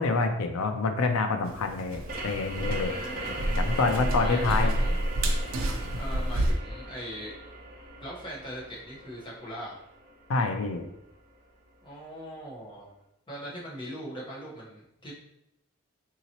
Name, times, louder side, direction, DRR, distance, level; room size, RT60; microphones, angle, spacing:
voice 1, 0.0-2.9 3.6-4.8 10.3-10.8, left 3 dB, 90° left, 6 dB, 0.5 m, -27 dB
sound 1, 1.4-6.5, right 1 dB, 80° right, 0.5 m, -29 dB
sound 2, 2.1-11.4, right 1 dB, 40° right, 0.8 m, -40 dB
voice 2, 2.8-3.6 4.2-5.0 5.9-7.3 8.0-9.8 11.8-12.9 13.3-15.1, equal, 25° left, -5 dB, 1.0 m, -40 dB
3.8 x 2.8 x 2.9 m, 0.81 s
head